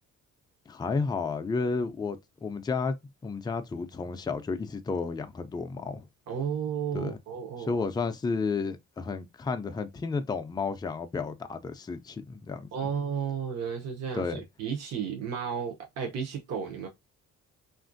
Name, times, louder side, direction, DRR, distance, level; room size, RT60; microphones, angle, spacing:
voice 1, 0.7-3.0 3.2-6.1 6.9-7.2 7.6-12.9 14.1-14.4, left 4 dB, 15° left, 0.4 m, -32 dB
voice 2, 6.3-7.8 12.7-16.9, right 7 dB, 60° right, 0.7 m, -33 dB
2.9 x 2.5 x 2.5 m
cardioid pair, 90°, 30 cm